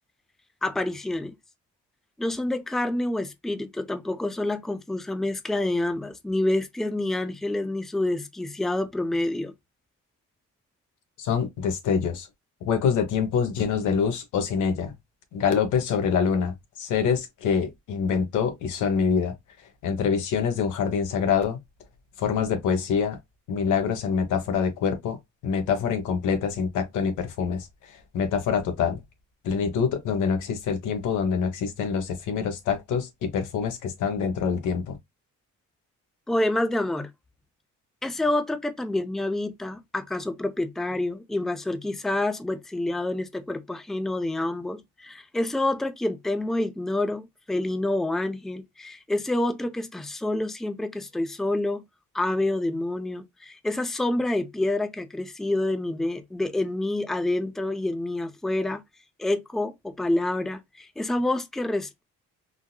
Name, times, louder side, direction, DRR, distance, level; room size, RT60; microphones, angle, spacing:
voice 1, 0.6-1.3 2.2-9.5 36.3-37.1 38.0-51.8 52.1-58.8 59.2-62.0, left 1 dB, ahead, 0.5 m, -28 dB
voice 2, 11.2-12.3 12.6-14.9 15.3-19.3 19.8-21.6 22.2-23.2 23.5-25.2 25.4-27.7 28.1-29.0 29.4-35.0, left 6 dB, 85° left, 1.1 m, -25 dB
3.8 x 2.7 x 2.2 m
cardioid pair, 90°, 30 cm